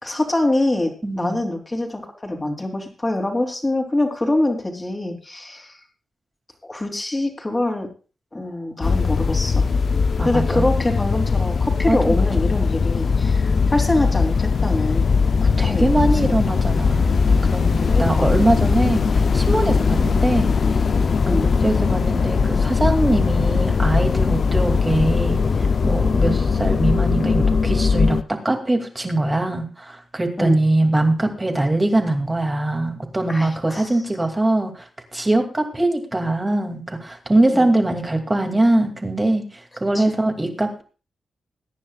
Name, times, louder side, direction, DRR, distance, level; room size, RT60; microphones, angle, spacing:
voice 1, 0.0-0.9 1.2-5.7 6.6-7.9 8.3-9.7 10.2-15.1 15.5-15.8 16.2-16.3 17.9-18.3 21.2-21.5 26.2-26.4 30.4-30.6 33.3-33.9 37.5-37.7 39.9-40.2, left 1 dB, 20° left, 2 dB, 3.1 m, -24 dB
voice 2, 1.0-1.4 10.2-10.7 11.9-12.3 15.4-20.5 21.3-25.4 25.8-40.8, right 2 dB, 20° right, 4 dB, 2.5 m, -22 dB
sound 1, 8.8-28.2, left 5 dB, 55° left, 0.5 m, -19 dB
21.5 x 10.0 x 2.4 m, 0.35 s
cardioid pair, 95°, 0 cm